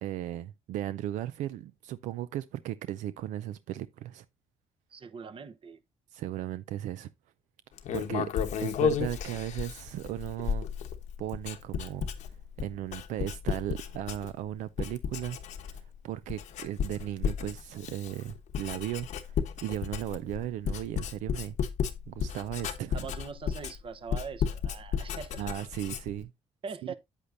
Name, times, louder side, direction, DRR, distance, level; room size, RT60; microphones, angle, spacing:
voice 1, 0.0-4.2 6.1-7.1 7.9-8.3 8.6-10.7 11.2-12.1 12.6-15.4 15.6-21.6 22.1-23.1 25.4-26.3 26.9-27.0, right 13 dB, 85° right, 0.4 m, -36 dB
voice 2, 4.9-5.8 22.9-25.4 26.6-26.9, right 5 dB, 45° right, 0.9 m, -42 dB
Writing, 7.8-14.5 14.8-16.0 16.3-26.2, left 7 dB, 75° left, 1.1 m, -33 dB
8.4 x 8.2 x 2.6 m
cardioid pair, 80°, 12 cm